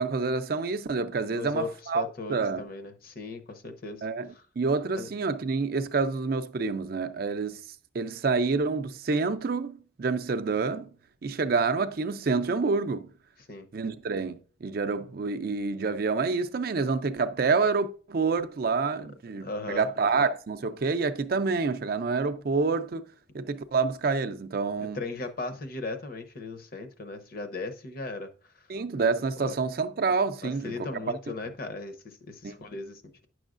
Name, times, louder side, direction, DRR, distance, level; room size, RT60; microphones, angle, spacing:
voice 1, 0.0-2.0 2.3-2.6 4.0-4.3 4.6-7.6 7.9-10.9 11.2-13.1 13.7-23.1 23.3-25.0 28.7-31.0 32.4-32.7, right 4 dB, 45° right, 0.4 m, -28 dB
voice 2, 1.3-4.4 5.0-5.1 13.5-13.7 19.4-19.9 24.8-28.7 29.4-29.5 30.4-33.3, left 3 dB, 45° left, 0.7 m, -38 dB
9.8 x 6.2 x 2.5 m
head